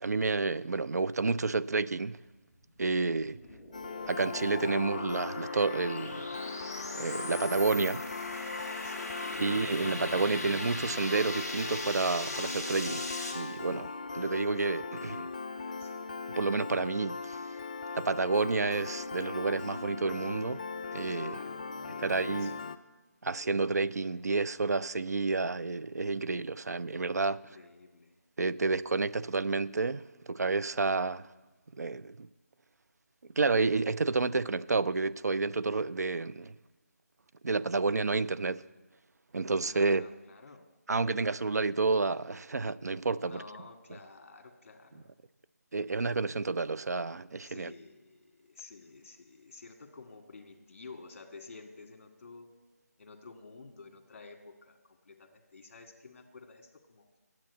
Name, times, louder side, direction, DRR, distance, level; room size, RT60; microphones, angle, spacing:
voice 1, 0.0-2.2 2.8-3.4 4.1-6.3 6.9-8.0 9.4-13.0 13.3-15.3 16.4-17.4 17.9-20.6 20.9-21.4 22.0-22.5 23.2-27.4 28.4-31.3 31.8-32.3 33.4-36.5 37.4-38.6 39.3-40.0 40.9-43.4 45.7-47.7, right 3 dB, 75° right, 0.4 m, -30 dB
sound 1, 2.8-13.3, left 1 dB, ahead, 2.1 m, -40 dB
voice 2, 3.3-3.7 8.8-10.2 15.0-16.0 21.1-22.5 27.3-28.2 39.6-40.7 43.2-45.1 47.4-52.5 53.0-57.0, left 4 dB, 45° left, 1.7 m, -52 dB
Piano, 3.7-22.8, left 4 dB, 30° left, 0.3 m, -39 dB
10.5 x 8.1 x 8.1 m
figure-of-eight pair, 160°, 9 cm